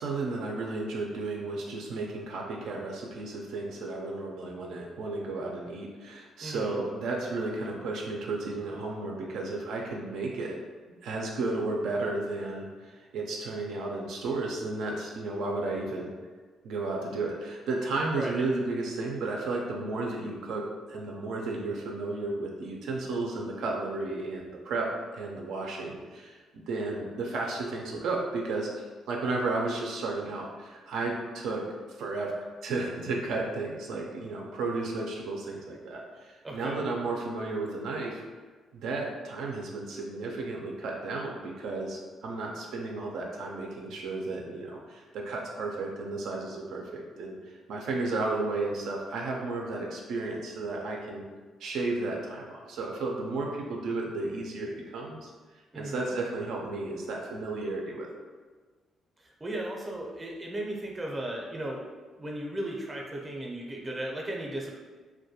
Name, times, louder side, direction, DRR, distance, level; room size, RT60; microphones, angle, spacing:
voice 1, 0.0-10.6 11.0-16.1 16.6-24.9 25.1-28.7 29.1-31.6 32.0-32.3 32.6-38.2 38.7-51.2 51.6-55.3 55.7-58.1, right 3 dB, 80° right, -1 dB, 0.3 m, -33 dB
voice 2, 6.4-6.8 18.1-18.4 36.4-36.8 55.7-56.2 59.2-61.8 62.2-64.7, right 1 dB, 20° right, -1 dB, 0.5 m, -36 dB
2.2 x 2.1 x 2.7 m, 1.4 s
cardioid pair, 90°, 0 cm